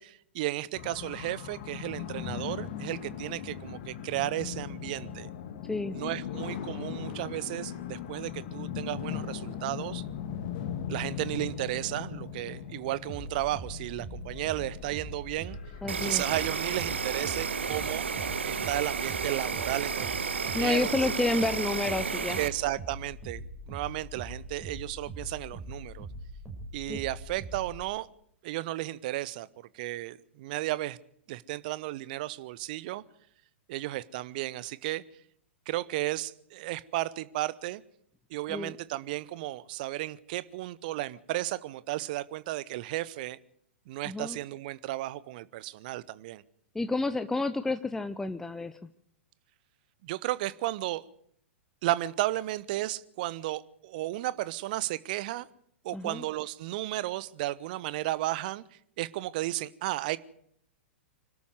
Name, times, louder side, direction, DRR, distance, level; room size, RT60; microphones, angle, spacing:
voice 1, 0.0-5.3 5.9-10.0 10.9-15.6 16.0-18.1 18.4-21.2 22.4-26.1 26.7-28.1 28.4-29.5 29.7-31.0 31.3-33.0 33.7-35.0 35.7-37.8 38.3-43.4 43.9-46.4 50.0-51.0 51.8-55.5 55.8-60.2, right 16 dB, 45° right, 18 dB, 0.9 m, -34 dB
sound 1, 0.7-16.4, left 8 dB, 45° left, 2.0 m, -39 dB
sound 2, 13.1-27.8, right 1 dB, 20° right, 6.3 m, -42 dB
voice 2, 15.8-16.2 20.5-22.4 26.9-27.0 38.5-38.7 44.1-44.4 46.7-48.7 55.9-56.2, left 3 dB, 5° left, 11 dB, 0.7 m, -30 dB
Insect, 15.9-22.5, right 6 dB, 70° right, 1.2 m, -32 dB
25.5 x 12.5 x 8.0 m, 0.70 s
figure-of-eight pair, 100°, 7 cm